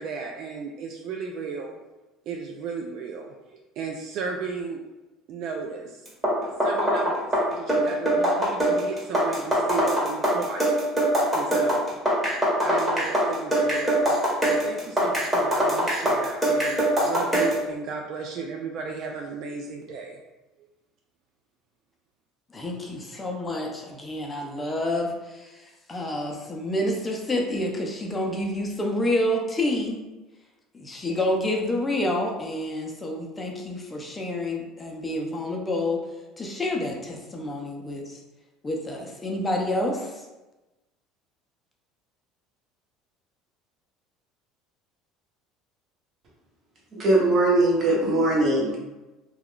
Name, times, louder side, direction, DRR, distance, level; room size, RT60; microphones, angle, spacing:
voice 1, 0.0-1.8 2.3-4.8 5.3-6.0 6.6-10.8 11.3-12.0 12.6-14.1 14.4-20.2 20.6-20.7, right 5 dB, 60° right, 2 dB, 0.3 m, -34 dB
sound 1, 6.1-17.6, right 1 dB, 10° right, 1.1 m, -23 dB
voice 2, 22.5-30.0 30.7-36.0 36.4-38.2 38.6-40.2, left 1 dB, 20° left, 0 dB, 0.5 m, -28 dB
voice 3, 46.9-48.8, right 2 dB, 40° right, -4 dB, 1.0 m, -21 dB
2.3 x 2.3 x 3.5 m, 1.1 s
supercardioid pair, 100°, 0 cm